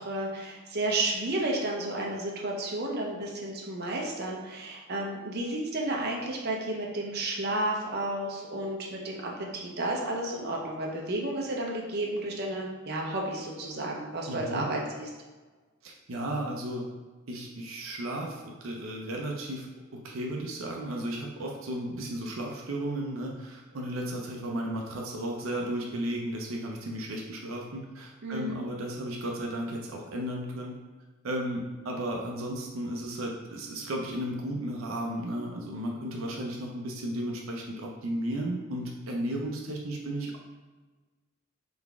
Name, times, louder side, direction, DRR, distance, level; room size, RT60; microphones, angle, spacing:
voice 1, 0.0-15.1 28.2-28.6, right 1 dB, 50° right, -2 dB, 0.8 m, -32 dB
voice 2, 14.3-14.7 15.8-16.9 17.3-19.7 19.9-30.8 31.2-40.4, right 1 dB, 90° right, 0 dB, 0.6 m, -34 dB
3.9 x 3.5 x 3.5 m, 1.3 s
head